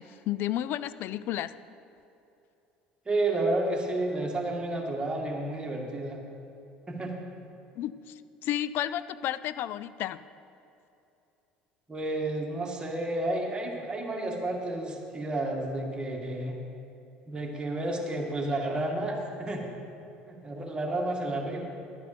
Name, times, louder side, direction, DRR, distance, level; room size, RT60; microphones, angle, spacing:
voice 1, 0.0-1.5 7.8-10.2, left 12 dB, 60° left, 15 dB, 0.4 m, -32 dB
voice 2, 3.1-6.2 6.9-7.1 11.9-16.6 17.3-19.7 20.3-21.7, right 2 dB, 20° right, 0 dB, 2.1 m, -31 dB
11.0 x 9.4 x 5.1 m, 2.7 s
hypercardioid pair, 75°, 4 cm